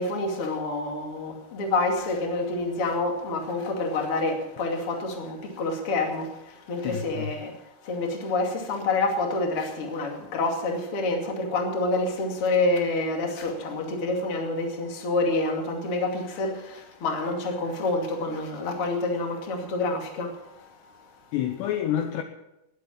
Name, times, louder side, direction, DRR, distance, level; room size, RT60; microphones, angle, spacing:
voice 1, 0.0-7.5 7.8-20.7, left 2 dB, 35° left, 2.6 m, -28 dB
voice 2, 6.8-7.3 21.3-22.2, left 10 dB, 75° left, 2.7 m, -28 dB
20.5 x 8.2 x 7.2 m
omnidirectional pair, 5.5 m